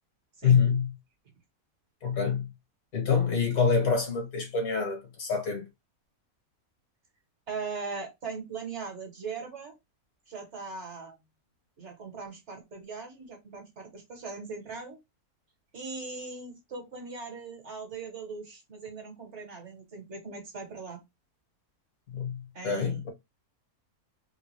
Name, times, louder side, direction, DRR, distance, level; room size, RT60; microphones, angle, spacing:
voice 1, 0.4-0.9 2.0-2.5 2.9-5.7 22.1-23.1, left 6 dB, 75° left, 1.9 m, -26 dB
voice 2, 7.5-9.7 10.3-11.1 11.8-15.0 15.7-21.0 22.5-23.1, right 4 dB, 50° right, 1.6 m, -40 dB
3.8 x 2.4 x 3.0 m
omnidirectional pair, 1.5 m